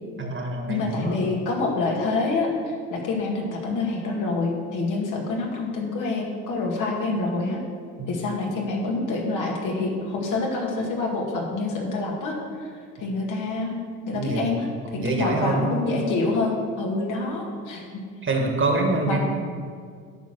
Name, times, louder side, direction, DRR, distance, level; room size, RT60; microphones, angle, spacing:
voice 1, 0.2-1.2 8.0-8.1 14.1-14.5 14.9-15.8 18.2-19.2, right 2 dB, 35° right, 2 dB, 1.9 m, -25 dB
voice 2, 0.7-7.6 8.1-12.4 13.0-13.8 14.1-14.7 15.0-17.9 19.1-19.2, left 3 dB, 60° left, 0 dB, 2.2 m, -26 dB
11.0 x 4.5 x 6.2 m, 2.1 s
hypercardioid pair, 65°, 34 cm